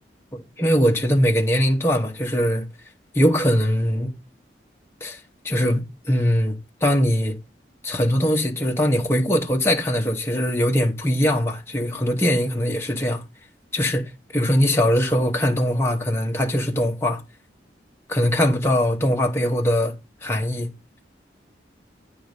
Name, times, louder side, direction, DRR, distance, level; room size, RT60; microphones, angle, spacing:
voice 1, 0.3-2.7 3.1-4.1 5.0-5.2 5.4-6.6 6.8-7.4 7.8-13.2 13.7-14.0 14.3-17.2 18.1-19.9 20.2-20.7, equal, 15° left, 0.8 m, -21 dB
9.3 x 3.1 x 5.2 m
head